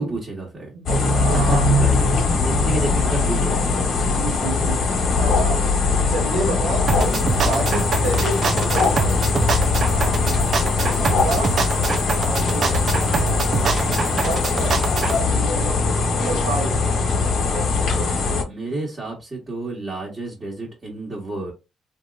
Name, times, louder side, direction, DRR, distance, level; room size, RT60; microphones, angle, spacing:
voice 1, 0.0-0.7 1.3-2.1 2.3-3.8 18.4-21.5, right 2 dB, 30° right, 1.5 m, -29 dB
voice 2, 0.7-1.7 2.1-2.2 4.0-4.9 5.2-5.6 6.1-9.2 9.8-10.5 10.9-11.5 12.2-12.9 14.1-14.7 15.2-15.9 16.2-16.8, right 2 dB, 80° right, 1.1 m, -30 dB
sound 1, 0.9-18.4, left 3 dB, 65° left, 1.2 m, -21 dB
sound 2, 6.9-15.2, right 5 dB, 50° right, 0.6 m, -24 dB
3.6 x 2.8 x 2.3 m
cardioid pair, 90°, 0 cm